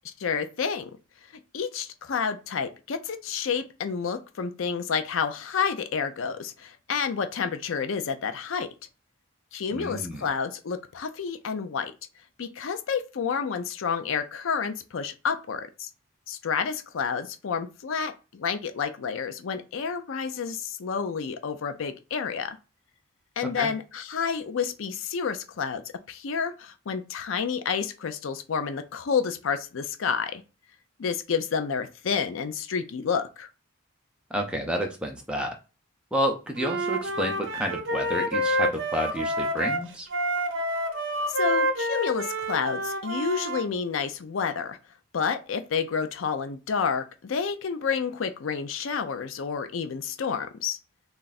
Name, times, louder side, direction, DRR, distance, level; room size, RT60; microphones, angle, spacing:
voice 1, 0.2-0.9 1.5-8.7 9.5-11.9 12.4-15.9 16.3-22.6 23.4-25.8 26.1-30.4 31.0-33.5 41.3-44.8 45.1-50.8, left 6 dB, 75° left, 0.5 m, -29 dB
voice 2, 9.7-10.3 23.6-23.7 34.3-35.5 36.1-40.1, equal, 5° right, 0.5 m, -30 dB
Wind instrument woodwind instrument, 36.6-43.6, equal, 65° right, 0.6 m, -28 dB
3.3 x 2.4 x 4.0 m
head